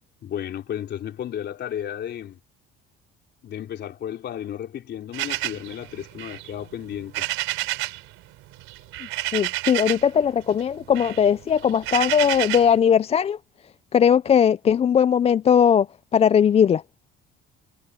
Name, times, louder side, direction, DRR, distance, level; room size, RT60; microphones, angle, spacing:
voice 1, 0.2-2.4 3.4-7.3, left 10 dB, 55° left, 3.6 m, -33 dB
sound 1, 5.1-8.1 8.3-10.2 10.5-12.8, right 17 dB, 80° right, 3.5 m, -30 dB
voice 2, 9.3-13.4 13.9-16.8, left 8 dB, 30° left, 0.4 m, -19 dB
cardioid pair, 110°, 21 cm